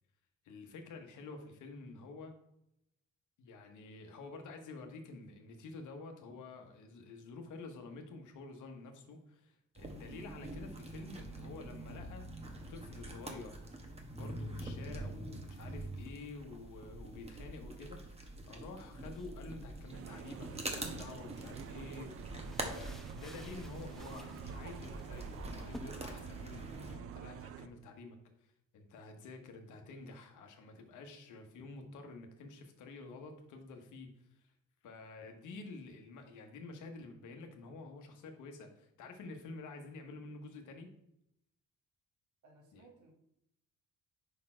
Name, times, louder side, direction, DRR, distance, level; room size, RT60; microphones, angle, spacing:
voice 1, 0.4-2.3 3.4-12.2 12.7-13.6 14.1-22.1 22.6-34.5 34.8-40.9 42.7-42.9, left 3 dB, 80° left, 5 dB, 1.1 m, -49 dB
sound 1, 9.8-27.0, right 1 dB, 20° right, 1.1 m, -45 dB
sound 2, 19.0-25.8, equal, ahead, 0.6 m, -54 dB
sound 3, 19.9-27.7, right 10 dB, 50° right, 0.4 m, -48 dB
voice 2, 42.4-43.1, right 3 dB, 70° right, 1 dB, 1.6 m, -61 dB
5.5 x 4.2 x 4.4 m, 0.80 s
cardioid pair, 90°, 30 cm